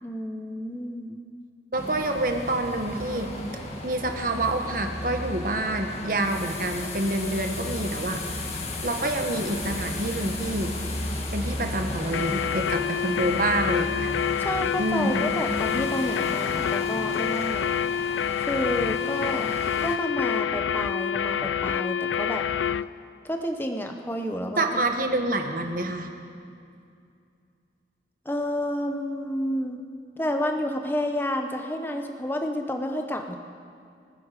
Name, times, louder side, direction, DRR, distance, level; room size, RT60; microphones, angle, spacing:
voice 1, 0.0-1.2 14.4-17.8 18.4-19.6 19.8-22.4 23.2-24.7 28.3-29.8 30.2-33.4, equal, 10° left, 4 dB, 0.8 m, -30 dB
voice 2, 1.7-8.2 8.8-10.7 11.3-14.1 14.8-15.2 24.6-26.1, right 2 dB, 50° right, 4 dB, 1.3 m, -27 dB
sound 1, 1.8-20.0, left 1 dB, 35° left, 1.6 m, -35 dB
sound 2, 12.1-22.9, left 8 dB, 90° left, 0.3 m, -27 dB
25.5 x 9.8 x 5.0 m, 2.4 s
head